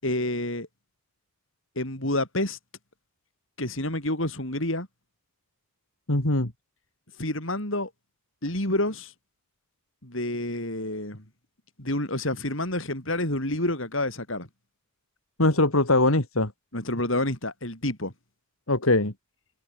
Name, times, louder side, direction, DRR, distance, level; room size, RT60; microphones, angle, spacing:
voice 1, 0.0-0.7 1.8-2.6 3.6-4.9 7.2-7.9 8.4-9.1 10.0-11.2 11.8-14.5 16.7-18.1, left 1 dB, 70° left, 7.5 m, -28 dB
voice 2, 6.1-6.5 15.4-16.5 18.7-19.1, left 2 dB, 85° left, 3.5 m, -21 dB
head